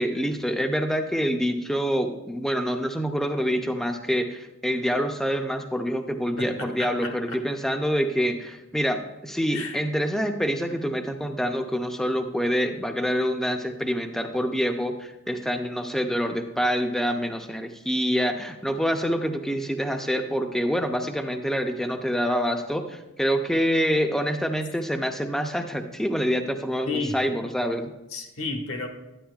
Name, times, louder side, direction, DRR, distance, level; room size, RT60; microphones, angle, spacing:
voice 1, 0.0-27.9, equal, ahead, 6 dB, 0.4 m, -26 dB
voice 2, 6.4-7.4 9.5-9.8 26.8-27.2 28.1-28.9, left 3 dB, 90° left, 3 dB, 1.3 m, -32 dB
10.0 x 9.4 x 2.3 m, 1.0 s
head